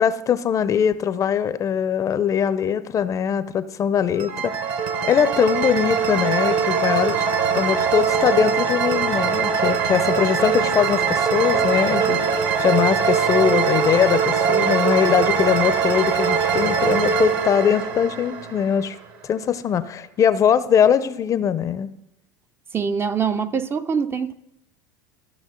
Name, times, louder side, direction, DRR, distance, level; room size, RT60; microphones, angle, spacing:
voice 1, 0.0-4.8 5.0-7.2 7.5-19.0 19.2-21.9, left 8 dB, 30° left, 0.5 m, -21 dB
sound 1, 4.2-19.0, right 6 dB, 50° right, 1.1 m, -22 dB
voice 2, 22.7-24.3, right 6 dB, 25° right, 0.5 m, -24 dB
14.0 x 6.0 x 3.8 m
hypercardioid pair, 85°, 10 cm